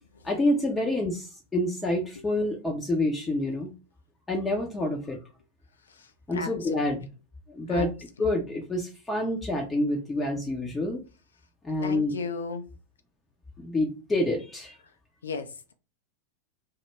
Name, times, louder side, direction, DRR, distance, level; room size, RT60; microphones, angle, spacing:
voice 1, 0.2-3.7 4.3-5.2 6.3-7.0 7.5-7.9 8.2-11.0 11.6-12.1 13.6-14.8, left 1 dB, 15° left, 0.5 m, -27 dB
voice 2, 5.9-6.9 7.7-7.9 11.8-12.6 15.2-15.7, left 4 dB, 70° left, 0.4 m, -35 dB
2.1 x 2.0 x 3.2 m
figure-of-eight pair, 90°, 0 cm